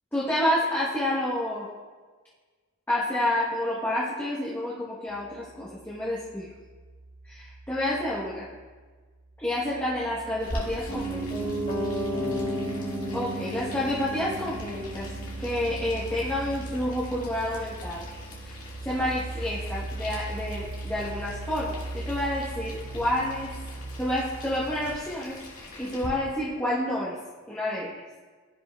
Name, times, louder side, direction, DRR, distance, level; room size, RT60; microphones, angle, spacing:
voice 1, 0.1-1.7 2.9-6.5 7.3-8.5 9.4-11.3 13.1-15.1 15.4-18.1 18.4-18.6 18.8-23.5 24.0-27.2 27.5-27.9, left 1 dB, 10° left, -7 dB, 0.9 m, -29 dB
sound 1, 5.1-8.9 9.2-25.0, right 2 dB, 70° right, 0.5 m, -40 dB
Boiling, 10.4-26.1, left 1 dB, 85° left, 1.8 m, -43 dB
Piano, 10.9-20.9 21.2-21.3, right 1 dB, 35° left, 2.1 m, -35 dB
13.5 x 5.1 x 2.2 m, 1.4 s
head